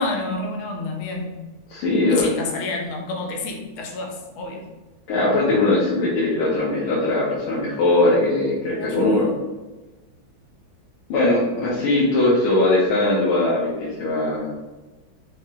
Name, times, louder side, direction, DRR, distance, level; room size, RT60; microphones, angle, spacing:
voice 1, 0.0-1.4 2.1-4.6 8.8-9.4, left 2 dB, 60° left, 1 dB, 0.8 m, -29 dB
voice 2, 1.7-2.3 5.1-9.3 11.1-14.5, left 2 dB, 80° left, -6 dB, 1.7 m, -20 dB
4.7 x 2.8 x 3.5 m, 1.2 s
omnidirectional pair, 2.3 m